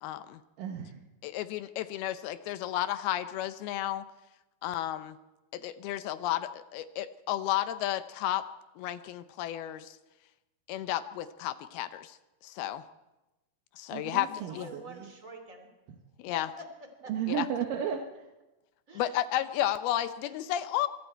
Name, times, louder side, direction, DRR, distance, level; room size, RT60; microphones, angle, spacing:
voice 1, 0.0-0.4 1.2-4.0 4.6-5.2 5.5-8.4 8.8-10.0 10.7-12.2 12.4-12.8 13.8-14.7 16.2-16.5 17.3-17.5 18.9-20.9, left 13 dB, 80° left, 11 dB, 2.7 m, -32 dB
voice 2, 0.6-1.0 13.9-15.1 17.1-18.3, right 8 dB, 65° right, 3 dB, 2.6 m, -34 dB
voice 3, 14.3-15.7 16.6-17.1 18.9-19.1 20.2-20.4, right 1 dB, 20° right, 4 dB, 3.3 m, -47 dB
24.5 x 23.5 x 4.5 m, 1.0 s
omnidirectional pair, 4.5 m